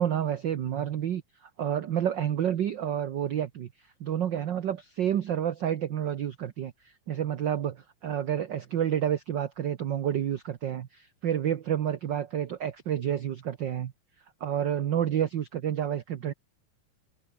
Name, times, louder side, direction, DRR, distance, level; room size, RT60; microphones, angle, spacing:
voice 1, 0.0-3.7 4.0-13.9 14.4-16.3, right 10 dB, 70° right, 1.0 m, -29 dB
omnidirectional pair, 3.4 m